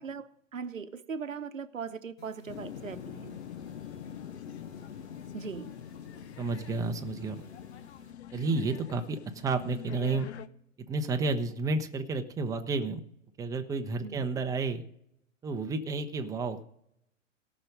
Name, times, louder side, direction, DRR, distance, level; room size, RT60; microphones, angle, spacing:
voice 1, 0.0-3.4 5.3-5.7 14.0-14.4, right 6 dB, 85° right, 0.9 m, -40 dB
sound 1, 2.2-8.1, left 1 dB, 85° left, 3.8 m, -55 dB
sound 2, 2.5-10.5, left 10 dB, 60° left, 0.8 m, -44 dB
voice 2, 6.4-7.4 8.3-10.3 10.9-13.0 13.4-14.8 15.4-16.6, right 3 dB, 10° right, 0.8 m, -31 dB
17.5 x 6.1 x 5.1 m
figure-of-eight pair, 110°, 38 cm